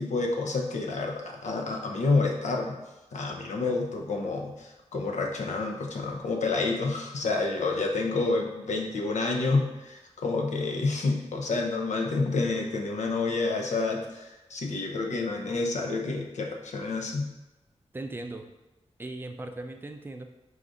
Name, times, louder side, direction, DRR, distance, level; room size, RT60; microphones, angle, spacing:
voice 1, 0.0-2.7 3.1-17.3, left 3 dB, 80° left, 2 dB, 0.7 m, -29 dB
voice 2, 17.9-18.5 19.0-20.2, right 2 dB, 15° right, 5 dB, 0.4 m, -38 dB
4.8 x 2.5 x 3.9 m, 1.1 s
wide cardioid pair, 95°, 12 cm